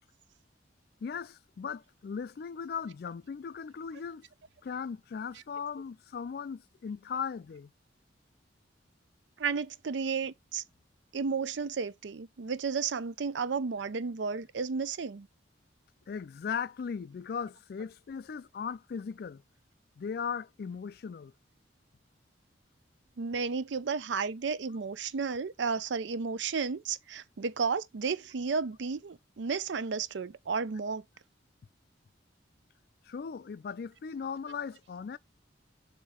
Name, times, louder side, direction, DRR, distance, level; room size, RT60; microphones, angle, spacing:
voice 1, 1.0-4.2 4.6-7.7 16.1-19.4 20.0-21.3 33.1-35.2, left 6 dB, 55° left, 0.3 m, -38 dB
voice 2, 9.4-10.6 11.1-15.3 23.2-31.0, right 5 dB, 70° right, 0.5 m, -33 dB
7.2 x 2.7 x 4.8 m
head